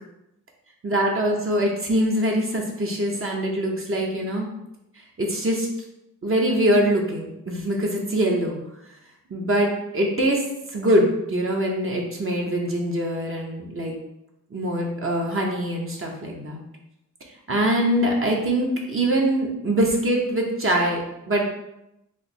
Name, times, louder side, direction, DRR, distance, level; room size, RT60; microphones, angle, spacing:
voice 1, 0.8-4.5 5.2-5.7 6.2-8.6 9.3-10.4 10.7-14.0 14.5-16.6 17.5-21.4, right 1 dB, 40° right, -1 dB, 0.8 m, -23 dB
3.2 x 2.0 x 4.1 m, 0.86 s
cardioid pair, 55°, 31 cm